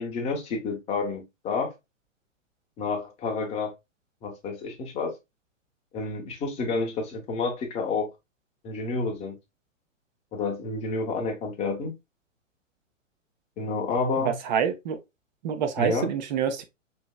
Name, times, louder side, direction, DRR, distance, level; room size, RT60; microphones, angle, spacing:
voice 1, 0.0-1.7 2.8-3.7 4.2-5.2 5.9-8.1 8.6-9.4 10.3-11.9 13.6-14.4 15.8-16.1, left 4 dB, 15° left, 0.8 m, -29 dB
voice 2, 14.2-15.0 15.4-16.6, right 8 dB, 35° right, 0.7 m, -27 dB
4.3 x 2.9 x 2.2 m
figure-of-eight pair, 115°, 39 cm